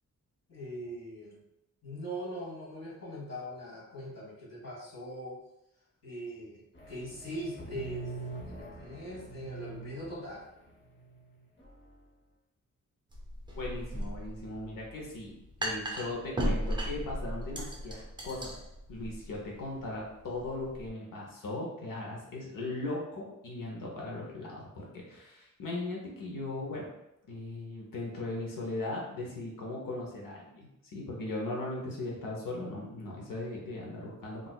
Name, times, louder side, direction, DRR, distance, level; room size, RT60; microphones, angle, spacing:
voice 1, 0.5-1.4 1.8-5.4 6.0-8.1 8.4-10.4, equal, 50° left, -5 dB, 1.3 m, -41 dB
sound 1, 6.7-11.7, right 3 dB, 35° left, 0.8 m, -44 dB
sound 2, 13.1-20.9, equal, 15° right, 0.5 m, -37 dB
voice 2, 13.5-15.3 15.6-18.5 18.9-26.9 27.3-34.5, left 2 dB, 75° left, -2 dB, 0.8 m, -38 dB
3.9 x 2.4 x 2.2 m, 0.88 s
wide cardioid pair, 135°, 33 cm